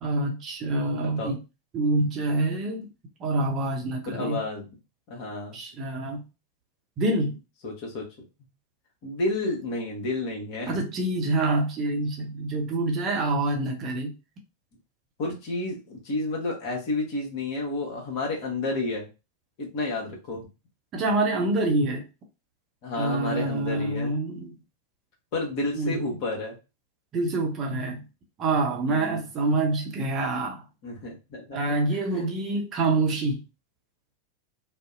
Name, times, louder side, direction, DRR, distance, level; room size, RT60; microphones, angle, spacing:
voice 1, 0.0-1.4 1.7-2.9 3.2-4.4 5.5-6.2 7.0-7.4 10.7-14.1 20.9-22.0 23.0-24.5 25.8-26.0 27.1-28.0 28.4-30.6 31.5-33.4, right 2 dB, 30° right, 0.6 m, -26 dB
voice 2, 1.0-1.3 4.1-4.6 5.1-5.6 7.6-8.1 9.0-10.8 15.2-19.1 19.6-20.4 22.8-24.1 25.3-26.6 28.8-29.3 30.8-31.6 32.1-32.2 32.5-32.6, left 2 dB, 45° left, 1.0 m, -31 dB
2.6 x 2.0 x 2.4 m
figure-of-eight pair, 90°, 0 cm